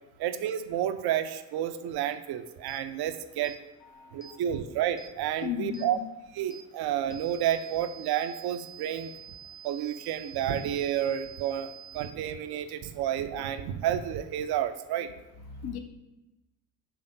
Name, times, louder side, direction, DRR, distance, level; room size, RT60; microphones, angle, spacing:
voice 1, 0.2-3.6 4.1-6.0 6.3-9.1 9.6-15.1, right 10 dB, 60° right, 10 dB, 0.7 m, -30 dB
sound 1, 2.7-2.8 3.4-3.6 4.2-4.4 5.0-5.1 5.7-5.9 6.5-6.7 7.1-12.1, right 9 dB, 5° left, 0.8 m, -47 dB
voice 2, 3.8-4.4 5.4-6.0 15.5-15.8, left 9 dB, 60° left, 6 dB, 0.9 m, -36 dB
6.0 x 3.4 x 5.1 m, 0.96 s
hypercardioid pair, 45°, 44 cm